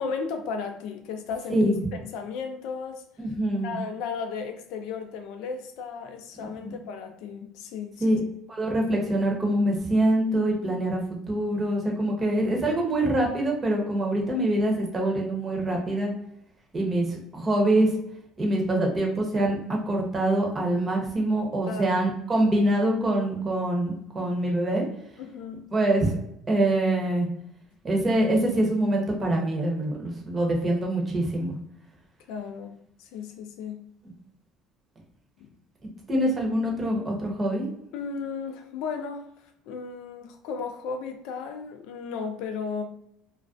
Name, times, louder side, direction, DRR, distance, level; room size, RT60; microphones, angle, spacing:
voice 1, 0.0-1.7 2.0-3.0 3.6-8.2 12.3-12.4 21.7-22.0 25.2-25.7 32.3-33.8 35.4-35.5 37.9-39.3 39.7-42.8, left 5 dB, 75° left, 6 dB, 0.4 m, -35 dB
voice 2, 1.5-1.8 3.2-3.7 6.4-6.8 8.0-8.2 8.5-11.0 11.3-16.1 16.7-17.1 17.3-17.9 18.4-24.9 25.7-26.2 26.5-27.3 27.8-31.6 36.1-37.7, right 1 dB, 25° right, 0 dB, 0.8 m, -24 dB
2.3 x 2.1 x 2.5 m, 0.76 s
supercardioid pair, 100°, 0 cm